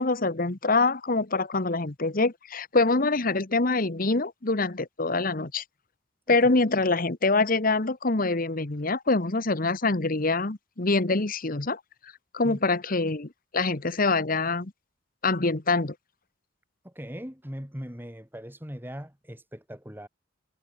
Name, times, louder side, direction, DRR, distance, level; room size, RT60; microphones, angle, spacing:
voice 1, 0.0-5.6 6.3-11.8 12.3-14.7 15.2-15.9, left 3 dB, 45° left, 1.3 m, -25 dB
voice 2, 16.8-20.1, equal, 10° right, 4.5 m, -40 dB
head